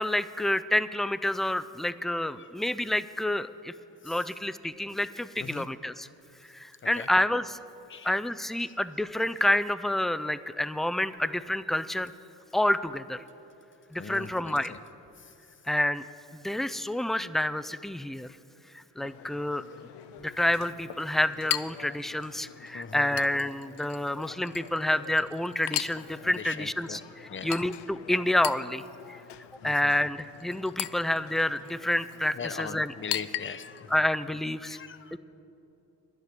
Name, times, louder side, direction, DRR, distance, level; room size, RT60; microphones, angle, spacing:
voice 1, 0.0-3.7 4.0-6.1 6.5-7.6 8.0-12.1 12.5-13.2 13.9-14.7 15.7-16.0 16.3-18.3 18.7-19.7 20.2-28.8 29.1-29.2 29.6-32.9 33.9-34.8 35.1-35.2, left 1 dB, ahead, 14 dB, 0.3 m, -28 dB
voice 2, 14.0-14.8 15.2-15.3 22.7-23.1 26.2-27.0 27.3-27.6 29.6-29.9 32.3-33.9 34.6-35.2, left 6 dB, 30° left, 13 dB, 0.7 m, -40 dB
Chink clink, 19.0-33.9, left 13 dB, 75° left, 0.6 m, -40 dB
11.5 x 11.0 x 6.7 m, 2.9 s
cardioid pair, 65°, 41 cm